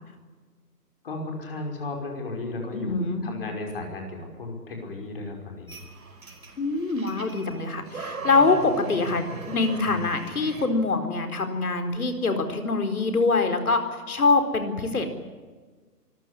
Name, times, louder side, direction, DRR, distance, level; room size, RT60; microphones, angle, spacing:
voice 1, 1.0-5.8, left 2 dB, 35° left, 2 dB, 5.6 m, -34 dB
voice 2, 2.7-3.3 6.6-13.8 14.1-15.1, left 3 dB, 65° left, 7 dB, 4.4 m, -24 dB
sound 1, 5.7-10.7, right 3 dB, 60° right, 5.1 m, -39 dB
25.0 x 15.0 x 9.9 m, 1.4 s
hypercardioid pair, 175°, 48 cm